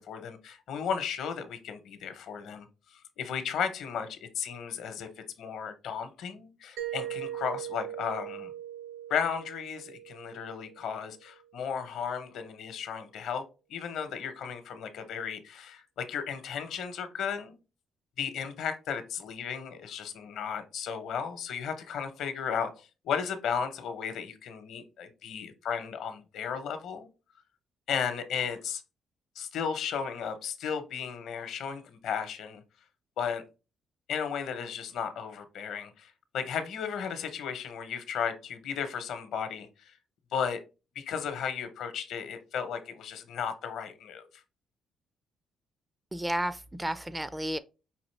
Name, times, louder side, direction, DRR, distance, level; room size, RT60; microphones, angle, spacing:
voice 1, 0.0-2.7 3.2-5.1 5.4-8.5 9.1-13.4 13.7-17.6 18.2-27.1 27.9-28.8 29.4-32.6 33.2-33.4 34.1-39.9 40.3-40.6 40.9-44.3, left 7 dB, 80° left, 0.8 m, -34 dB
Mallet percussion, 6.8-11.4, right 11 dB, 80° right, 0.6 m, -40 dB
voice 2, 46.1-47.6, right 1 dB, 10° right, 0.4 m, -32 dB
5.1 x 2.8 x 3.2 m
cardioid pair, 90°, 0 cm